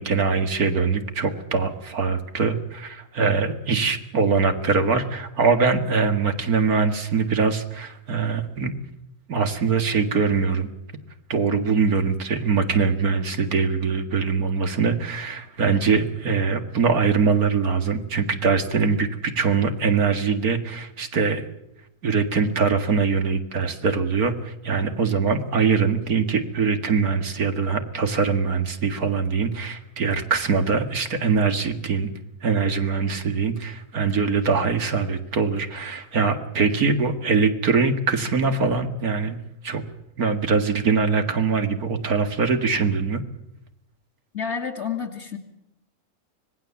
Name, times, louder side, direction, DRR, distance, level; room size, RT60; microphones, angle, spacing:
voice 1, 0.0-8.7 9.3-10.7 11.3-21.4 22.0-32.1 32.4-39.4 39.6-39.8 40.2-43.2, right 5 dB, 80° right, 7 dB, 2.4 m, -22 dB
voice 2, 44.3-45.4, left 6 dB, 50° left, 7 dB, 3.1 m, -29 dB
26.0 x 19.0 x 7.1 m, 0.85 s
omnidirectional pair, 1.5 m